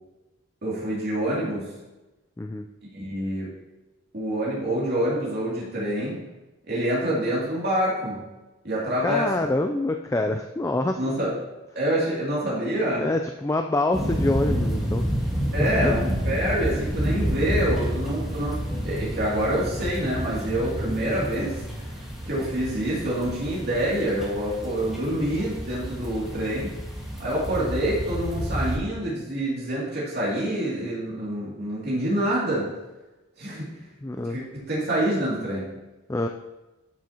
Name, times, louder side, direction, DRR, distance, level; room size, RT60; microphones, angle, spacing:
voice 1, 0.6-1.8 2.9-3.5 4.1-6.2 6.7-8.3 8.6-9.5 11.0-11.3 11.7-13.1 15.5-21.6 22.2-26.7 27.2-32.7 33.4-33.8 34.1-35.7, right 1 dB, 50° right, -6 dB, 2.6 m, -26 dB
voice 2, 2.4-2.7 9.0-11.0 13.0-15.1 15.6-16.0 34.0-34.4 36.1-36.3, left 2 dB, 15° left, 5 dB, 0.3 m, -26 dB
sound 1, 13.9-28.8, equal, ahead, 1.5 m, -29 dB
12.5 x 6.1 x 2.9 m, 1.0 s
head